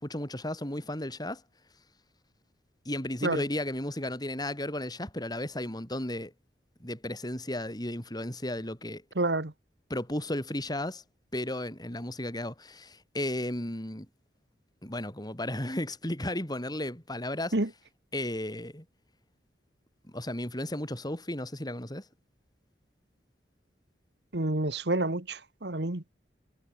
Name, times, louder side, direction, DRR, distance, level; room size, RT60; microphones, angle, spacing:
voice 1, 0.0-1.4 2.8-6.3 6.8-9.0 9.9-11.0 11.3-14.1 14.8-17.5 18.1-18.8 20.1-22.0, left 1 dB, 25° left, 5.1 m, -34 dB
voice 2, 9.2-9.5 17.5-17.7 24.3-26.0, right 2 dB, 70° right, 1.9 m, -28 dB
head